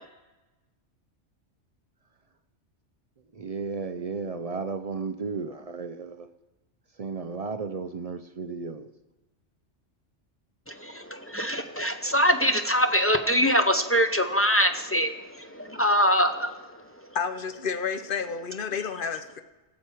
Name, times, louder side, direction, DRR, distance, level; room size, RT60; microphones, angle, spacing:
voice 1, 3.3-6.3 7.0-8.9, right 4 dB, 55° right, 0.4 m, -34 dB
voice 2, 10.7-16.6, equal, 20° left, 0.4 m, -24 dB
voice 3, 17.1-19.4, left 6 dB, 50° left, 0.8 m, -30 dB
17.5 x 7.4 x 4.5 m
omnidirectional pair, 1.2 m